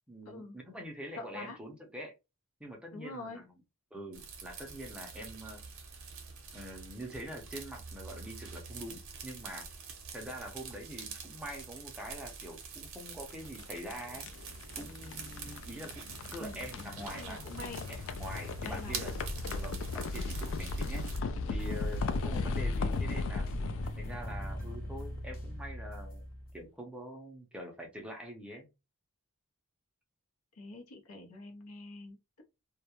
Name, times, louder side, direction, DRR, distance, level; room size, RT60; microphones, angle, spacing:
voice 1, 0.1-2.1 2.6-3.5 3.9-5.6 6.5-9.7 10.1-14.3 14.8-16.0 16.3-19.1 19.5-21.0 21.5-23.5 24.0-26.2 26.5-28.7, equal, 5° right, 0.5 m, -45 dB
voice 2, 1.2-1.6 2.9-3.4 16.4-16.7 17.0-17.8 18.6-19.1 19.5-19.6 30.5-32.4, left 2 dB, 75° left, 0.7 m, -45 dB
sound 1, 4.1-21.2, right 5 dB, 65° right, 0.6 m, -46 dB
sound 2, 13.3-25.4, left 3 dB, 60° left, 0.3 m, -37 dB
sound 3, 21.6-26.6, equal, 40° left, 0.8 m, -42 dB
2.3 x 2.0 x 2.9 m
head